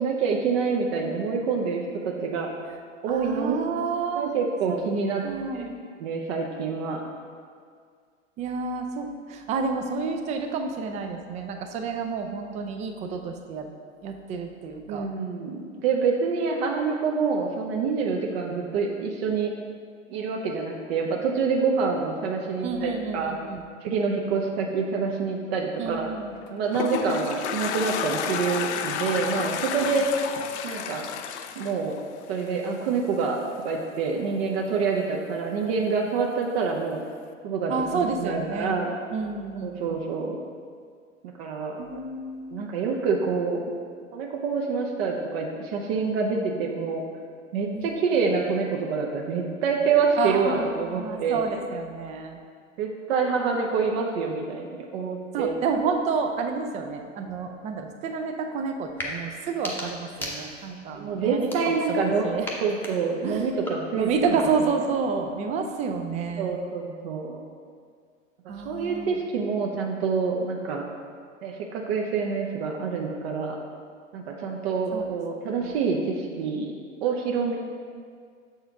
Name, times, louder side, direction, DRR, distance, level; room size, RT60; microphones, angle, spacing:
voice 1, 0.0-2.5 3.0-3.6 4.2-5.2 5.5-5.6 6.0-7.0 14.9-19.5 20.1-23.4 23.8-26.1 26.5-30.1 30.6-31.0 31.6-32.0 32.3-37.0 37.4-38.9 39.6-40.4 41.2-41.8 42.5-43.7 44.1-47.0 47.5-51.5 52.8-55.5 60.9-62.3 62.6-64.1 66.4-67.4 68.6-70.8 71.4-73.6 74.1-76.7 77.0-77.6, right 5 dB, 55° right, 0 dB, 0.7 m, -27 dB
voice 2, 3.1-4.3 4.7-4.8 5.2-5.8 8.4-13.7 14.0-15.1 22.6-23.6 25.8-26.4 37.7-38.8 39.1-40.0 41.8-42.7 47.7-48.0 50.2-52.4 55.3-62.5 63.2-63.5 63.9-66.6 68.5-69.2 74.9-75.1 75.6-75.7, right 5 dB, 20° right, 5 dB, 0.3 m, -30 dB
Toilet flush, 26.4-32.7, left 8 dB, 60° left, 0.5 m, -31 dB
sound 1, 58.9-59.1 59.5-60.8 61.4-62.1 62.4-64.8, left 1 dB, 5° left, 0.8 m, -37 dB
6.7 x 4.4 x 3.6 m, 2.1 s
hypercardioid pair, 95°, 38 cm